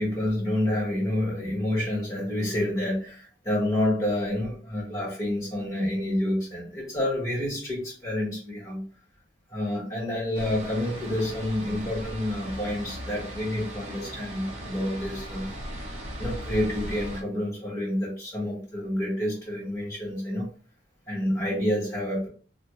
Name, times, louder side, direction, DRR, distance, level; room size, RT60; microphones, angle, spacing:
voice 1, 0.0-8.8 9.5-15.5 16.2-20.5 21.1-22.3, left 1 dB, 15° left, -5 dB, 1.7 m, -28 dB
sound 1, 10.3-17.2, right 1 dB, 35° right, 0.7 m, -38 dB
3.3 x 2.5 x 2.9 m, 0.40 s
head